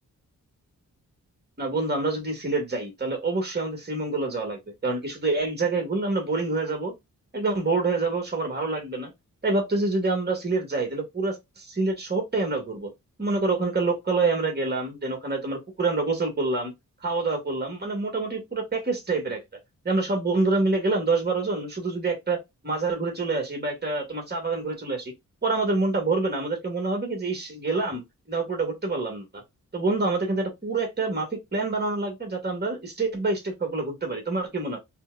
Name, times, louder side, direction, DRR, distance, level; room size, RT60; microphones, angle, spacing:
voice 1, 1.6-6.9 7.3-9.1 9.4-12.9 13.2-16.7 17.0-19.4 19.9-25.1 25.4-28.0 28.3-29.4 29.7-34.8, right 3 dB, 30° right, 1.7 m, -27 dB
4.3 x 2.3 x 2.3 m
cardioid pair, 50°, 36 cm